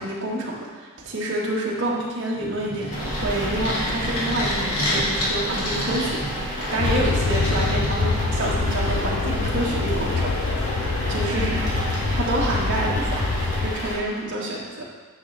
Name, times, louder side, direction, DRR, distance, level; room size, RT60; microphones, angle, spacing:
voice 1, 0.0-6.2 6.5-10.6 11.1-14.8, right 1 dB, 55° right, -4 dB, 1.7 m, -28 dB
sound 1, 2.3-8.7, left 1 dB, 90° left, 2.3 m, -30 dB
sound 2, 2.9-13.9, equal, 35° left, 2.1 m, -30 dB
sound 3, 6.8-13.7, left 3 dB, 65° left, 0.6 m, -25 dB
10.0 x 6.2 x 3.4 m, 1.4 s
head